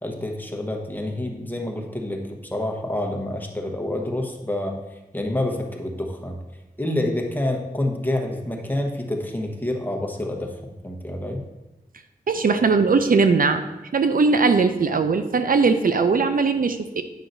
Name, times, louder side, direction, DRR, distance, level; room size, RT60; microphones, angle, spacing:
voice 1, 0.0-4.8 5.1-6.4 6.8-11.4, left 1 dB, 10° left, 2 dB, 1.1 m, -28 dB
voice 2, 12.3-13.6 13.9-17.0, right 4 dB, 70° right, 8 dB, 0.5 m, -19 dB
9.2 x 5.7 x 2.6 m, 1.0 s
wide cardioid pair, 60°, 15 cm